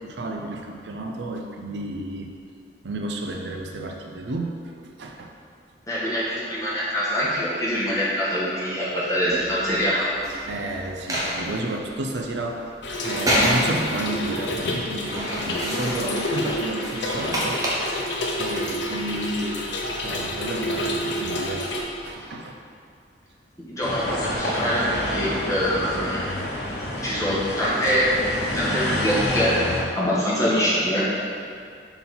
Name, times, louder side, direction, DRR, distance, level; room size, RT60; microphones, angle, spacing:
voice 1, 0.0-2.3 2.8-5.3 10.5-12.7 13.0-17.6 18.4-19.7 20.0-22.6, right 2 dB, 75° right, 2 dB, 0.5 m, -31 dB
voice 2, 5.9-10.1 23.7-26.2 27.0-28.2 28.5-29.5 29.9-31.1, equal, 20° left, -8 dB, 1.4 m, -24 dB
sound 1, 9.3-22.1, equal, 20° right, 0.9 m, -31 dB
Trickle dribble / Fill (with liquid), 12.8-21.8, left 1 dB, 80° left, 0.7 m, -29 dB
sound 2, 23.8-29.8, left 1 dB, 65° left, 1.0 m, -28 dB
5.6 x 4.0 x 4.2 m, 2.3 s
head